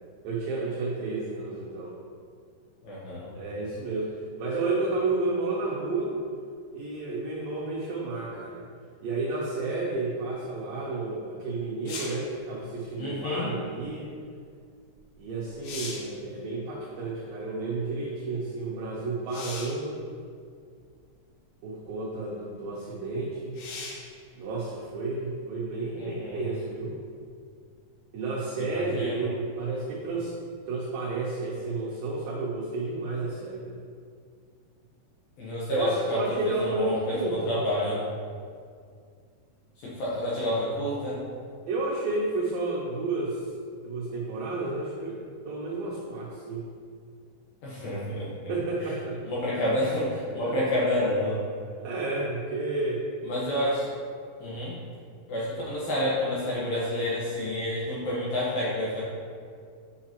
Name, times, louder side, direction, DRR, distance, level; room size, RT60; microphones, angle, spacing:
voice 1, 0.2-1.9 3.3-6.1 6.7-8.6 9.0-14.1 15.2-20.0 21.6-23.6 24.4-27.0 28.1-30.3 30.7-33.7 35.7-37.6 41.7-43.5 43.8-45.2 45.5-46.7 48.5-49.2 50.4-50.5 51.8-53.0, right 3 dB, 85° right, -5 dB, 2.0 m, -31 dB
voice 2, 2.8-3.3 13.0-13.5 26.0-26.5 28.6-29.3 35.4-38.0 39.8-41.2 47.6-48.5 49.2-51.5 53.2-53.9 54.4-54.8 55.3-59.0, left 1 dB, 70° left, -7 dB, 2.4 m, -29 dB
sound 1, 11.9-12.3 15.0-15.1 15.5-16.2 19.3-19.8 20.9-21.0 23.5-24.1 27.7-27.8, left 3 dB, 85° left, 3.5 m, -38 dB
7.7 x 6.8 x 3.0 m, 2.2 s
omnidirectional pair, 5.4 m